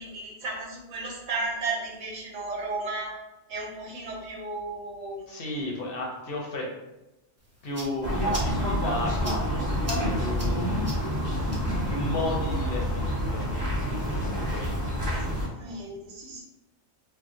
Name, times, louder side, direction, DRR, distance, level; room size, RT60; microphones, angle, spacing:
voice 1, 0.0-3.2 3.5-5.2 15.1-16.4, right 3 dB, 85° right, -2 dB, 1.1 m, -34 dB
voice 2, 5.3-6.7 7.6-11.3 11.9-14.8, left 2 dB, 60° left, -1 dB, 0.7 m, -34 dB
sound 1, 7.4-14.8, right 1 dB, 25° right, 0.3 m, -45 dB
sound 2, 8.0-15.5, equal, 60° right, 1.1 m, -28 dB
2.7 x 2.1 x 3.6 m, 0.96 s
omnidirectional pair, 1.3 m